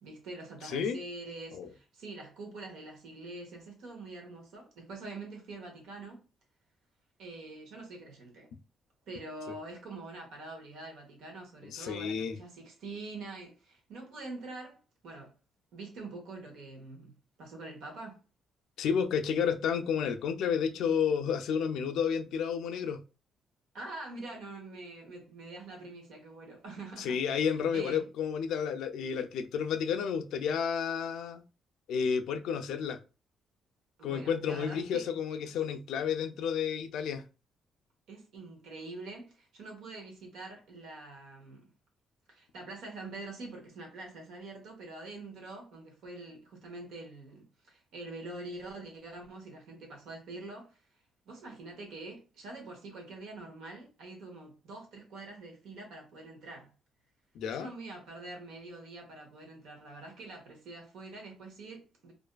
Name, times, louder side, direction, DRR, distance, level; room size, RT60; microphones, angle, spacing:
voice 1, 0.0-6.2 7.2-8.5 9.1-15.3 15.7-18.2 23.7-27.5 27.7-28.1 34.0-35.1 38.1-41.7 42.3-50.8 51.3-56.7 57.5-62.1, right 2 dB, 85° right, 0.9 m, -45 dB
voice 2, 0.6-1.0 1.5-1.7 11.6-12.4 18.8-23.0 27.0-31.4 31.9-33.0 34.0-37.2 57.4-57.7, left 7 dB, 80° left, 0.3 m, -31 dB
2.5 x 2.4 x 2.2 m
cardioid pair, 180°, 0 cm